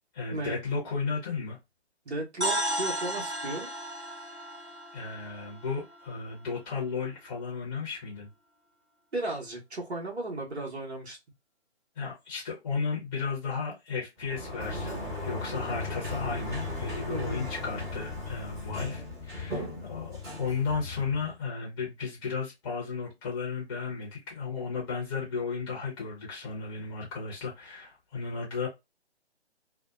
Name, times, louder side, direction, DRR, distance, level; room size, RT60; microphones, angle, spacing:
voice 1, 0.1-1.6 4.9-8.3 11.9-28.7, left 5 dB, 20° left, 0.7 m, -34 dB
voice 2, 2.1-3.7 9.1-11.2 17.1-17.4, right 2 dB, 75° right, 1.2 m, -35 dB
sound 1, 2.4-6.4, right 1 dB, 90° right, 0.8 m, -34 dB
Sliding door, 14.2-21.3, left 2 dB, 10° right, 0.9 m, -37 dB
2.7 x 2.2 x 2.4 m
figure-of-eight pair, 135°, 33 cm